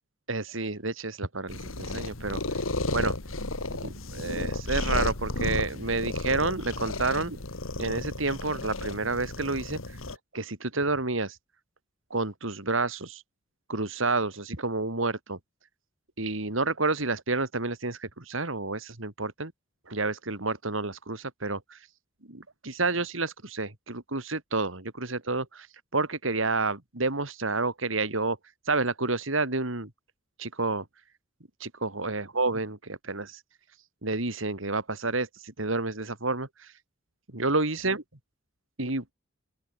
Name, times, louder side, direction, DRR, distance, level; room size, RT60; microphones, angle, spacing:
voice 1, 0.3-2.6 2.9-3.1 3.8-7.4 7.8-10.0 10.3-11.4 12.1-13.2 13.7-15.4 16.2-19.5 19.9-21.9 22.3-25.7 25.9-28.4 28.6-29.9 30.4-30.9 31.6-33.4 34.0-36.7 37.3-38.0 38.8-39.1, right 3 dB, 80° right, 3.1 m, -30 dB
sound 1, 1.5-10.2, left 2 dB, 90° left, 2.4 m, -33 dB
open air
head